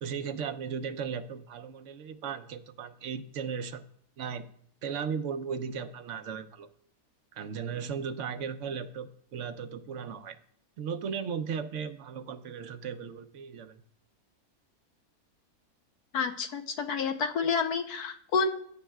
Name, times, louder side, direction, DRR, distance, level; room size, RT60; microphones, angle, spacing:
voice 1, 0.0-3.8 4.2-4.4 4.8-6.7 7.3-10.4 10.8-13.8, right 6 dB, 65° right, 10 dB, 0.8 m, -36 dB
voice 2, 16.1-18.5, left 5 dB, 80° left, 5 dB, 1.3 m, -29 dB
15.0 x 10.0 x 2.3 m, 0.65 s
omnidirectional pair, 1.7 m